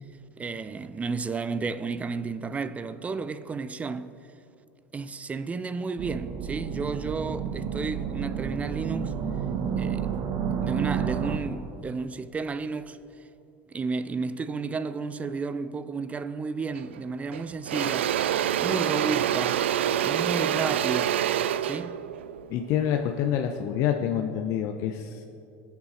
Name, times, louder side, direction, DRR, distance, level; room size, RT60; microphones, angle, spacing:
voice 1, 0.4-4.1 4.9-9.2 9.8-10.1 10.6-13.0 13.7-18.1 18.6-19.7 20.0-21.2 21.6-22.0, right 4 dB, 20° right, 0.6 m, -32 dB
sound 1, 6.0-11.4, right 7 dB, 55° right, 1.1 m, -30 dB
Engine / Drill, 16.8-17.0 17.3-23.5, right 10 dB, 85° right, 0.4 m, -27 dB
voice 2, 22.5-25.2, left 9 dB, 55° left, 0.8 m, -27 dB
21.5 x 7.2 x 4.3 m
hypercardioid pair, 90°, 6 cm